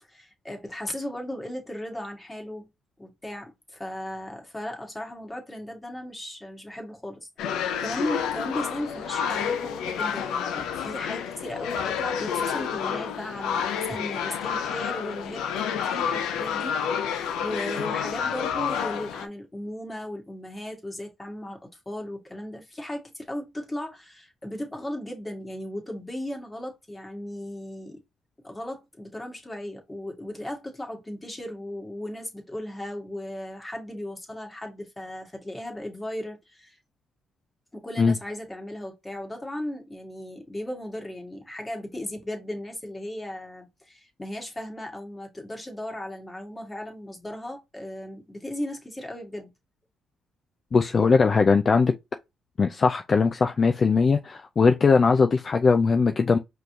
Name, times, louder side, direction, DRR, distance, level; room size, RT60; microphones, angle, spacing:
voice 1, 0.1-2.7 3.0-21.6 21.8-28.0 28.4-36.8 37.7-49.5, left 1 dB, 15° left, 1.7 m, -36 dB
sound 1, 7.4-19.3, left 7 dB, 90° left, 0.6 m, -29 dB
voice 2, 50.7-51.9 52.6-56.4, left 4 dB, 40° left, 0.4 m, -20 dB
5.1 x 3.1 x 2.8 m
cardioid pair, 90°, 0 cm